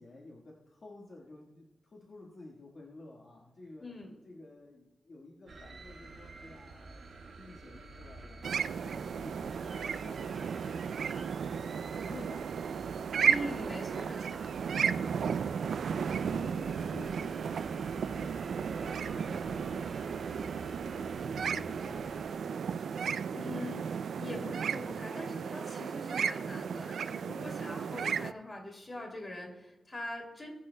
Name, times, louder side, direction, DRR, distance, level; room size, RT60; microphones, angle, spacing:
voice 1, 0.0-3.9 4.2-10.5 11.5-13.0 15.6-18.3 18.6-22.4 28.0-28.3, left 2 dB, 45° left, -3 dB, 1.5 m, -52 dB
voice 2, 3.8-4.2 13.2-14.5 23.3-30.5, left 1 dB, 25° left, 0 dB, 2.6 m, -42 dB
sound 1, 5.5-22.3, right 3 dB, 55° right, 1.8 m, -48 dB
sound 2, 8.4-28.3, right 7 dB, 75° right, 0.3 m, -34 dB
Crowd, 18.6-26.1, right 1 dB, 15° right, 1.6 m, -58 dB
20.0 x 10.0 x 2.2 m, 1.0 s
wide cardioid pair, 130°, 0 cm